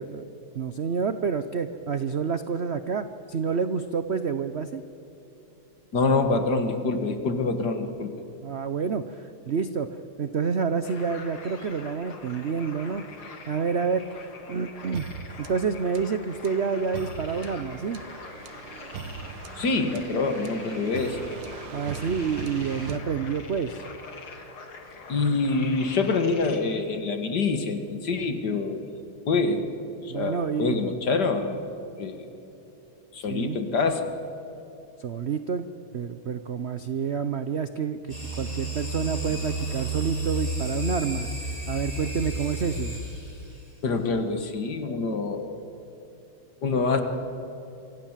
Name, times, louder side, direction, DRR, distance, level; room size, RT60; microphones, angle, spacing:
voice 1, 0.0-4.8 8.4-9.9 10.2-13.0 13.5-14.0 14.5-15.0 15.4-18.0 21.7-23.8 30.1-30.8 33.3-33.6 35.0-35.6 35.9-41.3 41.7-43.0, right 6 dB, 80° right, 10 dB, 0.6 m, -28 dB
voice 2, 5.9-8.1 19.6-21.2 25.1-28.9 29.3-29.8 30.0-31.6 32.0-32.2 33.1-34.1 43.8-45.6 46.6-47.0, left 3 dB, 55° left, 7 dB, 2.2 m, -26 dB
sound 1, 10.8-26.6, left 4 dB, 80° left, 3.2 m, -44 dB
sound 2, 14.9-23.8, right 5 dB, 65° right, 1.8 m, -40 dB
sound 3, 38.1-43.6, right 1 dB, 15° left, 5.7 m, -32 dB
26.5 x 25.0 x 7.5 m, 2.9 s
omnidirectional pair, 2.3 m